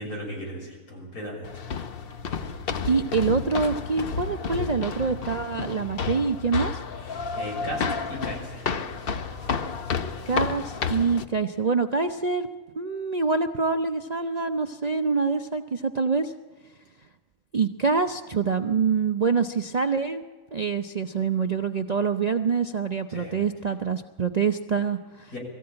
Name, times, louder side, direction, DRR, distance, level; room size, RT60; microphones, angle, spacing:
voice 1, 0.0-1.5 7.1-8.7 23.1-23.4 25.3-25.4, equal, 80° left, -1 dB, 6.9 m, -36 dB
sound 1, 1.4-11.2, left 5 dB, 50° left, 0.9 m, -31 dB
voice 2, 2.9-6.8 10.3-12.5 12.8-16.3 17.5-20.2 20.5-25.3, right 5 dB, 45° right, 6 dB, 0.5 m, -25 dB
22.0 x 14.5 x 8.8 m, 1.4 s
omnidirectional pair, 1.5 m